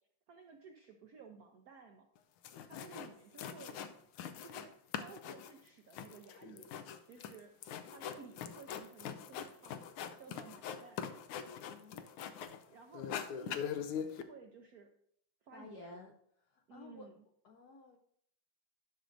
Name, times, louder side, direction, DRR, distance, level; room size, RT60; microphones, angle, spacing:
voice 1, 0.3-2.1 2.6-3.8 4.4-4.7 5.0-7.5 7.9-9.9 10.2-11.0 12.7-14.9 15.4-16.0 16.7-17.1, right 5 dB, 75° right, 3 dB, 0.8 m, -55 dB
sound 1, 2.2-2.3 2.4-3.1 3.4-4.7 4.9-12.6 12.9-14.2, left 8 dB, 90° left, 1.5 m, -42 dB
voice 2, 2.7-3.1 11.6-12.6 15.5-16.1 16.5-17.1 17.4-18.0, left 3 dB, 70° left, 3 dB, 1.0 m, -54 dB
11.0 x 6.3 x 2.6 m, 0.68 s
omnidirectional pair, 2.3 m